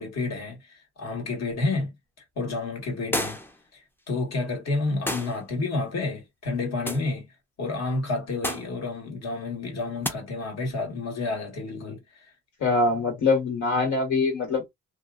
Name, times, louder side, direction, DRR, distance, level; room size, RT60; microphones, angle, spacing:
voice 1, 0.0-1.9 2.4-3.4 3.7-7.3 7.6-12.0, left 3 dB, 60° left, 1.6 m, -30 dB
sound 1, 3.1-3.6 5.1-5.4 6.9-7.1 8.4-8.8 10.0-10.2, left 1 dB, 5° left, 0.5 m, -30 dB
voice 2, 12.6-14.7, left 3 dB, 75° left, 1.7 m, -23 dB
2.7 x 2.5 x 2.4 m
cardioid pair, 90°, 30 cm